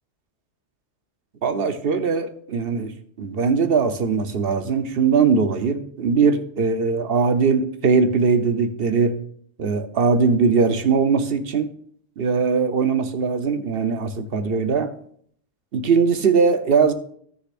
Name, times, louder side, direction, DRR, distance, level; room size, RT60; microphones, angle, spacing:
voice 1, 1.4-2.9 3.2-9.2 9.6-11.7 12.2-14.9 15.7-16.9, right 5 dB, 55° right, 9 dB, 1.0 m, -20 dB
16.5 x 6.8 x 2.5 m, 0.63 s
omnidirectional pair, 1.2 m